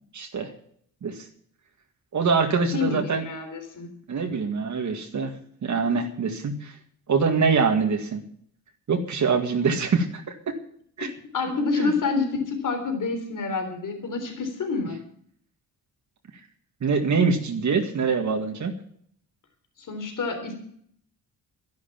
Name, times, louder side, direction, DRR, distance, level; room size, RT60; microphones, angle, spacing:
voice 1, 0.1-0.5 1.0-1.1 2.1-3.2 4.1-5.3 5.6-6.7 7.1-8.2 8.9-10.6 11.0-11.1 11.8-11.9 16.8-18.7, right 5 dB, 55° right, 4 dB, 2.0 m, -24 dB
voice 2, 2.7-3.9 11.3-15.0 19.8-20.5, left 4 dB, 60° left, 5 dB, 3.6 m, -28 dB
13.0 x 11.0 x 7.2 m, 0.63 s
cardioid pair, 125°, 35 cm